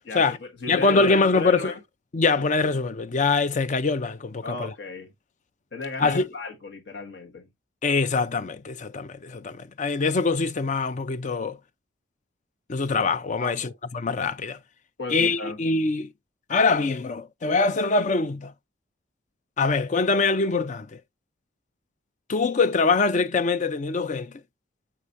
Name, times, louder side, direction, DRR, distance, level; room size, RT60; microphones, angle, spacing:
voice 1, 0.0-1.8 4.4-5.1 5.7-7.5 13.4-13.7 15.0-15.6, left 3 dB, 65° left, 1.3 m, -35 dB
voice 2, 0.7-1.7 2.1-4.7 6.0-6.3 7.8-11.6 12.7-14.6 15.1-16.1 16.5-18.5 19.6-21.0 22.3-24.3, left 4 dB, 40° left, 0.5 m, -23 dB
7.5 x 4.9 x 2.6 m
head